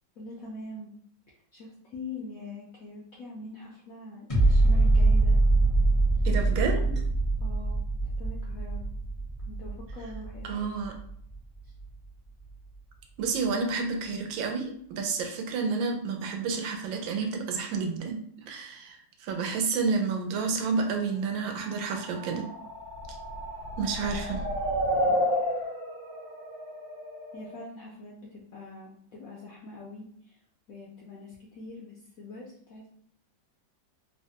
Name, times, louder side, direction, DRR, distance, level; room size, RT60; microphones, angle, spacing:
voice 1, 0.2-0.9 1.5-5.4 6.2-6.5 7.4-7.8 8.2-8.8 9.5-10.7 11.6-11.7 24.0-24.2 27.3-30.4 30.7-32.9, left 2 dB, 75° left, -4 dB, 0.8 m, -43 dB
sound 1, 4.3-11.3 11.8-11.9, right 2 dB, 40° left, 0.4 m, -24 dB
voice 2, 6.2-7.0 10.4-10.9 13.2-22.5 23.1-23.2 23.8-24.4, right 4 dB, 80° right, 3 dB, 1.3 m, -30 dB
sound 2, 21.8-27.6, equal, 65° right, 1.2 m, -31 dB
3.2 x 2.1 x 2.7 m, 0.64 s
omnidirectional pair, 2.0 m